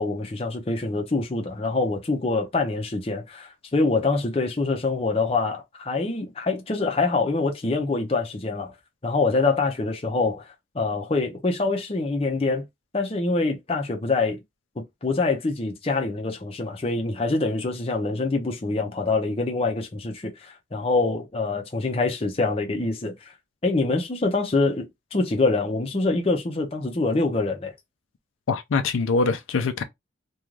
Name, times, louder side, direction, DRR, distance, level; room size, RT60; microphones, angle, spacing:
voice 1, 0.0-8.7 9.0-12.6 12.9-14.4 15.0-23.3 23.6-27.7, left 3 dB, 30° left, 0.5 m, -25 dB
voice 2, 28.5-29.8, left 4 dB, 85° left, 0.4 m, -23 dB
2.5 x 2.3 x 3.1 m
head